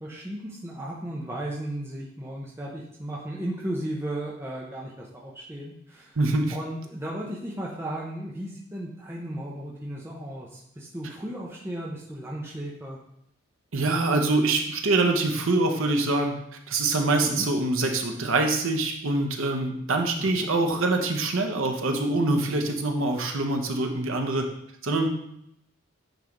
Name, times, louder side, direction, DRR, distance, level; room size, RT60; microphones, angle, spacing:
voice 1, 0.0-6.2 6.5-13.0 17.2-17.4 20.2-20.3, right 1 dB, 10° right, -4 dB, 0.7 m, -35 dB
voice 2, 6.2-6.6 13.7-16.4 16.7-24.5 24.8-25.1, right 2 dB, 75° right, 4 dB, 0.9 m, -24 dB
9.0 x 3.3 x 3.8 m, 0.75 s
head